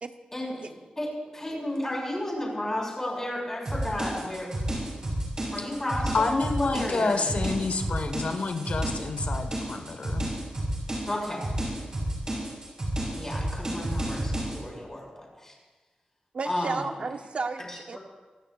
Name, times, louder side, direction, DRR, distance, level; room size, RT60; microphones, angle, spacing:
voice 1, 0.3-4.5 5.0-5.1 5.5-7.3 11.1-11.4 13.2-15.5 16.4-16.9 17.7-18.0, left 1 dB, 20° left, -2 dB, 5.2 m, -33 dB
sound 1, 3.6-14.6, right 1 dB, 30° right, 6.0 m, -31 dB
voice 2, 6.1-10.3, left 3 dB, 60° left, 6 dB, 1.3 m, -28 dB
voice 3, 16.3-18.0, right 4 dB, 50° right, 7 dB, 0.8 m, -33 dB
25.0 x 17.0 x 2.4 m, 1.3 s
wide cardioid pair, 165°, 3 cm